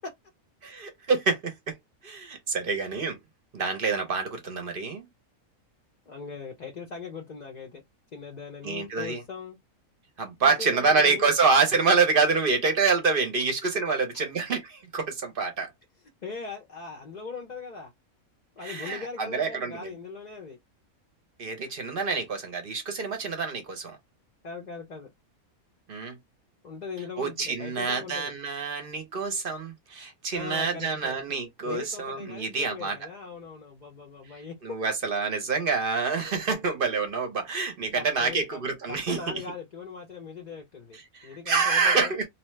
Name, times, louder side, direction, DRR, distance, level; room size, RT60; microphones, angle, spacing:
voice 1, 0.6-1.7 2.0-3.2 3.5-5.0 8.6-9.2 10.2-15.7 18.6-19.9 21.4-24.0 25.9-26.2 27.2-33.0 34.6-39.2 41.1-42.3, right 4 dB, 50° right, 0.8 m, -27 dB
voice 2, 6.1-7.8 8.1-9.6 10.4-11.3 16.2-17.9 18.6-20.6 24.4-25.1 26.6-28.3 30.3-31.4 31.6-34.5 37.9-38.6 38.9-42.2, left 5 dB, 45° left, 0.6 m, -40 dB
2.8 x 2.2 x 3.1 m
omnidirectional pair, 1.5 m